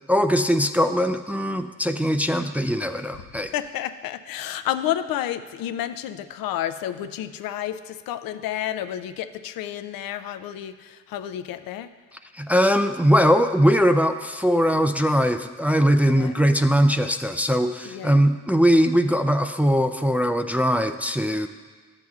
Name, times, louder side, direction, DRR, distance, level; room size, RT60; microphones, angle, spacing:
voice 1, 0.1-3.5 12.3-21.5, equal, 5° right, 7 dB, 0.3 m, -20 dB
voice 2, 3.5-11.9 16.0-16.3 17.9-18.2, left 11 dB, 80° left, 11 dB, 0.5 m, -30 dB
11.5 x 7.7 x 2.4 m, 1.5 s
supercardioid pair, 60°, 34 cm